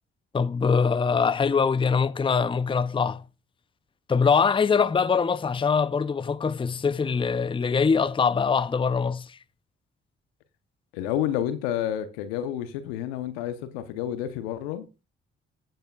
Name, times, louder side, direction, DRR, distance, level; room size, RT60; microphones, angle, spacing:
voice 1, 0.3-3.2 4.1-9.4, left 5 dB, 15° left, 0.5 m, -23 dB
voice 2, 10.9-15.0, left 11 dB, 85° left, 0.9 m, -30 dB
15.5 x 7.8 x 2.3 m
hypercardioid pair, 40°, 30 cm